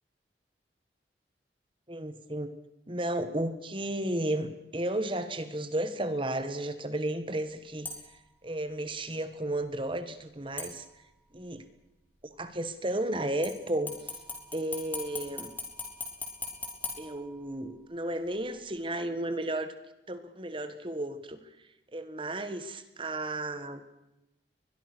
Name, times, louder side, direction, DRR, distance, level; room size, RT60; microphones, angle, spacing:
voice 1, 1.9-2.5 2.9-7.9 8.4-10.8 11.3-11.6 12.4-14.0 14.5-15.5 17.0-19.7 20.1-21.4 21.9-23.8, right 1 dB, 30° right, 11 dB, 1.7 m, -33 dB
sound 1, 7.9-8.3 10.6-11.3 13.4-17.8 18.3-18.4, left 3 dB, 10° left, 4.7 m, -41 dB
23.0 x 22.0 x 6.3 m, 0.92 s
head